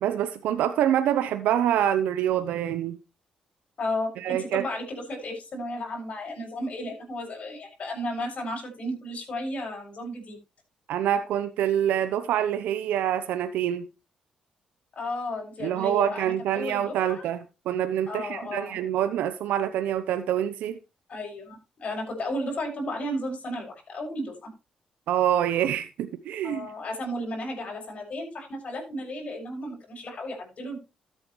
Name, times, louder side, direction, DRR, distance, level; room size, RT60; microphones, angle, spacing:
voice 1, 0.0-3.0 4.2-4.6 10.9-13.9 15.6-17.4 17.7-20.8 25.1-26.7, right 10 dB, 85° right, 10 dB, 0.8 m, -26 dB
voice 2, 3.8-10.4 14.9-17.2 18.1-18.8 21.1-24.5 26.4-30.8, left 1 dB, 55° left, 1 dB, 7.0 m, -34 dB
13.5 x 8.9 x 3.1 m, 0.28 s
supercardioid pair, 65°, 3 cm